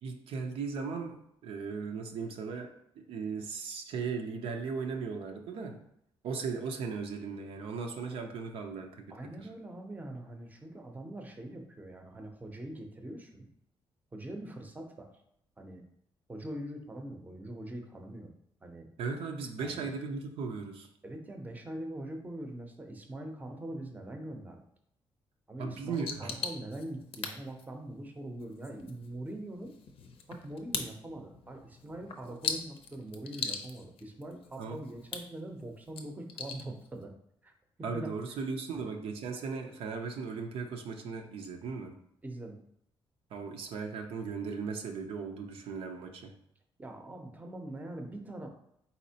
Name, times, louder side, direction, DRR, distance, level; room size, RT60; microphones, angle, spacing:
voice 1, 0.0-5.8 6.2-9.1 9.4-9.5 19.0-20.9 25.6-26.3 34.6-34.8 37.8-41.9 43.3-46.3, right 5 dB, 85° right, 3 dB, 0.6 m, -37 dB
voice 2, 9.1-13.5 14.1-15.2 15.6-15.8 16.3-18.3 18.6-18.9 19.6-19.9 21.0-24.6 25.5-29.7 30.3-37.1 37.4-37.5 37.9-38.1 38.7-39.0 42.2-42.6 46.8-48.5, right 1 dB, 15° right, 4 dB, 0.6 m, -43 dB
sound 1, 25.9-37.0, left 5 dB, 75° left, 0.5 m, -42 dB
4.2 x 4.0 x 2.8 m, 0.74 s
cardioid pair, 125°, 10 cm